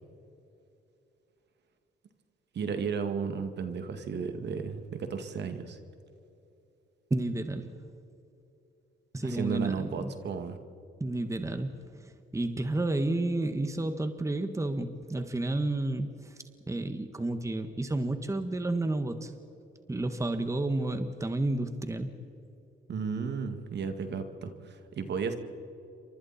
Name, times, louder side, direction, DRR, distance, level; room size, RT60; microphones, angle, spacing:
voice 1, 2.5-5.8 9.2-10.6 22.9-25.3, right 6 dB, 60° right, 7 dB, 2.2 m, -34 dB
voice 2, 7.1-7.8 9.1-10.1 11.0-16.4 16.7-19.3 19.9-22.1, right 2 dB, 15° right, 8 dB, 1.6 m, -31 dB
29.0 x 25.0 x 4.3 m, 2.8 s
cardioid pair, 90°, 20 cm